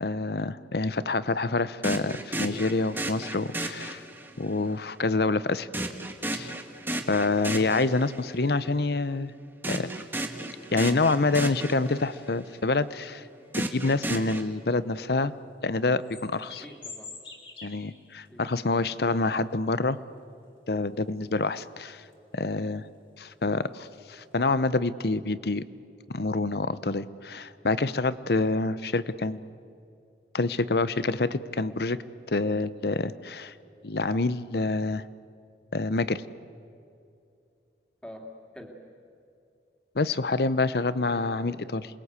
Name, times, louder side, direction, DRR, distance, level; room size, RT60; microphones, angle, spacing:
voice 1, 0.0-4.0 4.4-5.7 6.3-6.5 7.1-9.3 9.7-9.9 10.7-13.2 13.6-15.3 15.6-16.6 17.6-20.0 20.7-22.0 22.3-22.8 23.2-25.6 26.1-29.5 30.3-32.0 32.3-33.5 33.8-35.0 35.7-36.2 39.9-41.9, left 3 dB, 65° left, 15 dB, 0.8 m, -27 dB
sound 1, 1.8-4.5 5.7-8.4 9.6-12.3 13.5-14.4, right 1 dB, 10° right, 1.5 m, -34 dB
sound 2, 11.1-11.9 12.8-12.9 13.4-14.9 15.2-15.3 15.8-18.3 18.6-18.7 19.2-20.0 20.4-21.0 21.3-21.5 22.0-22.3 22.9-23.0 23.2-23.3 23.7-23.9 24.3-24.5, left 4 dB, 30° left, 2.7 m, -47 dB
voice 2, 16.5-17.1 18.3-18.4 38.0-38.8 41.5-41.7, left 1 dB, 5° left, 2 dB, 2.7 m, -46 dB
28.0 x 21.0 x 8.3 m, 2.6 s
head